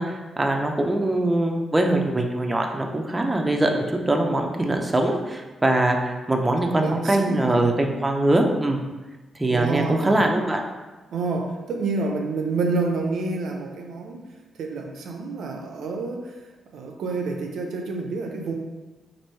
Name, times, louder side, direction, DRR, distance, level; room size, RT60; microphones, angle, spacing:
voice 1, 0.0-8.8 9.4-10.6, right 1 dB, 20° right, 2 dB, 0.5 m, -22 dB
voice 2, 6.6-7.6 9.5-10.2 11.1-14.2 14.6-16.4 16.7-18.5, right 3 dB, 80° right, 2 dB, 0.4 m, -28 dB
3.0 x 2.6 x 4.3 m, 1.2 s
cardioid pair, 65°, 0 cm